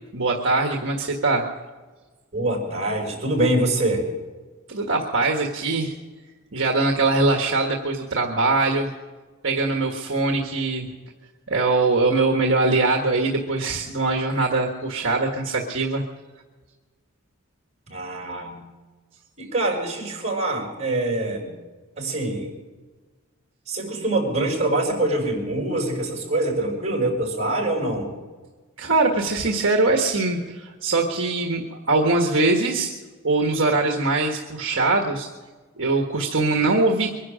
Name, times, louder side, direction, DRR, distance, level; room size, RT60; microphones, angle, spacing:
voice 1, 0.1-1.5 4.7-5.9 6.5-8.9 9.4-10.9 11.5-16.0 28.8-33.0 33.2-35.3 35.8-37.1, right 3 dB, 60° right, 1 dB, 1.6 m, -22 dB
voice 2, 2.3-4.0 17.9-18.6 19.4-21.5 22.0-22.5 23.7-28.1, right 2 dB, 35° right, -1 dB, 5.5 m, -24 dB
23.5 x 11.0 x 5.0 m, 1.3 s
head